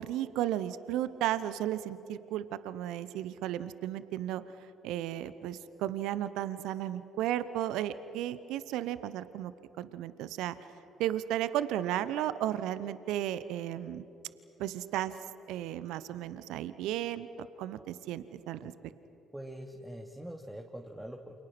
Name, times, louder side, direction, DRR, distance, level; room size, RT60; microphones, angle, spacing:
voice 1, 0.0-4.4 4.8-9.5 9.8-14.1 14.6-15.1 15.5-18.7, right 12 dB, 70° right, 15 dB, 0.9 m, -34 dB
voice 2, 19.3-21.4, right 1 dB, 10° right, 2 dB, 2.5 m, -44 dB
29.0 x 28.0 x 6.1 m, 2.9 s
hypercardioid pair, 50°, 0 cm